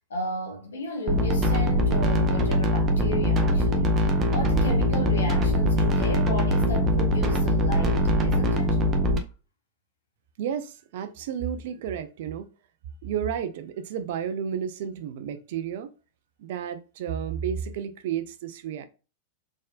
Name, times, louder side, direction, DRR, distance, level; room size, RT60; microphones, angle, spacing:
voice 1, 0.1-4.0 4.3-8.8, left 1 dB, 65° left, 1.3 m, -33 dB
sound 1, 1.1-9.2, equal, 25° right, 0.8 m, -22 dB
voice 2, 10.4-12.5 13.0-15.9 16.4-18.9, right 8 dB, 55° right, 0.6 m, -32 dB
4.2 x 3.6 x 2.4 m
figure-of-eight pair, 90°, 0 cm